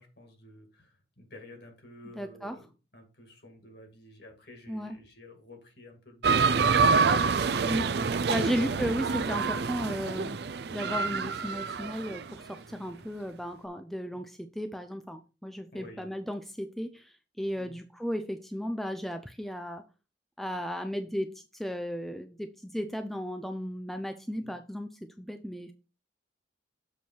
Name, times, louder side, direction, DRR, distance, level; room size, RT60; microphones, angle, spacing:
voice 1, 0.0-6.9 8.3-8.9 14.1-14.2 15.7-16.1 17.5-17.8 24.3-24.5, left 1 dB, 60° left, 2.1 m, -51 dB
voice 2, 2.2-2.5 4.7-5.0 7.6-10.4 10.7-17.0 17.4-19.8 20.4-21.3 21.6-24.9 25.2-25.7, equal, ahead, 0.4 m, -35 dB
sound 1, 6.2-12.3, right 5 dB, 60° right, 0.4 m, -27 dB
7.1 x 4.4 x 4.5 m
head